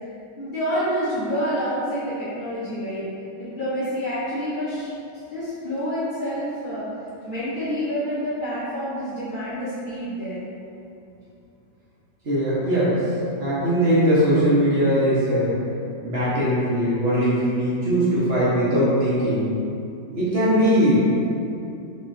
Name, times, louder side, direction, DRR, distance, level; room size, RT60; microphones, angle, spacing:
voice 1, 0.4-3.1 3.4-4.9 5.3-6.9 7.2-10.4, equal, 55° left, -12 dB, 0.5 m, -28 dB
voice 2, 12.2-13.0 13.4-15.5 16.0-19.5 20.1-21.0 21.5-21.6, equal, 45° right, -10 dB, 0.9 m, -20 dB
4.0 x 3.0 x 2.6 m, 2.6 s
omnidirectional pair, 2.0 m